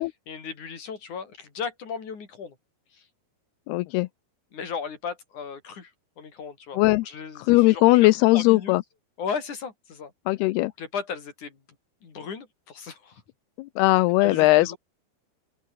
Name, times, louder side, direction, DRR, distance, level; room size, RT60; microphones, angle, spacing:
voice 1, 0.3-2.6 2.9-3.1 4.5-5.9 6.2-6.8 7.0-8.1 8.3-8.8 9.2-10.1 10.8-11.6 12.0-13.2 14.2-14.8, left 6 dB, 50° left, 5.4 m, -35 dB
voice 2, 3.7-4.1 6.7-7.1 7.4-8.8 10.3-10.7 13.6-14.8, left 20 dB, 85° left, 2.6 m, -19 dB
open air
omnidirectional pair, 4.7 m